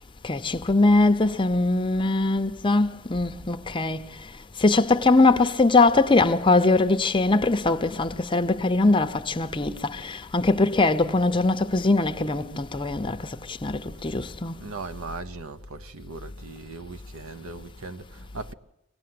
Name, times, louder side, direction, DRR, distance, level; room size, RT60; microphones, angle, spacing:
voice 1, 0.2-4.3 4.6-14.6, left 2 dB, 25° left, 0.7 m, -22 dB
voice 2, 14.6-18.5, right 3 dB, 75° right, 0.9 m, -39 dB
24.0 x 18.0 x 7.7 m
head